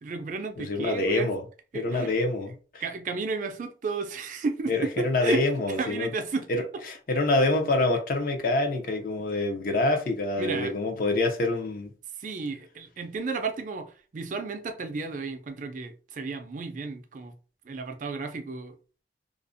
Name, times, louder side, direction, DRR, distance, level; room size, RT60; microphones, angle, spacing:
voice 1, 0.0-1.4 1.7-2.1 2.8-6.5 10.4-10.7 12.1-17.4 17.6-18.8, right 4 dB, 45° right, 0.4 m, -33 dB
voice 2, 0.6-1.4 1.7-2.8 4.7-6.1 6.5-6.6 7.1-11.9, left 2 dB, 50° left, 0.5 m, -26 dB
2.4 x 2.0 x 2.5 m
head